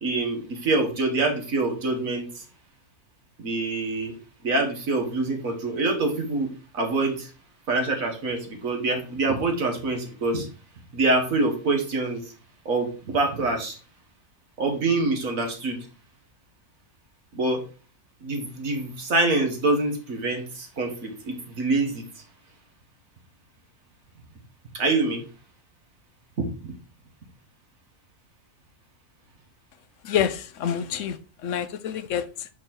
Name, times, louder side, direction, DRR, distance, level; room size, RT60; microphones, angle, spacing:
voice 1, 0.0-2.4 3.4-4.1 4.4-7.3 7.7-10.5 10.9-12.3 12.7-13.8 14.6-15.9 17.3-17.6 18.2-22.1 24.7-25.2 26.4-26.7, right 2 dB, 70° right, 2.0 m, -25 dB
voice 2, 30.0-32.5, left 9 dB, 70° left, 0.9 m, -28 dB
6.3 x 4.6 x 4.4 m
omnidirectional pair, 1.5 m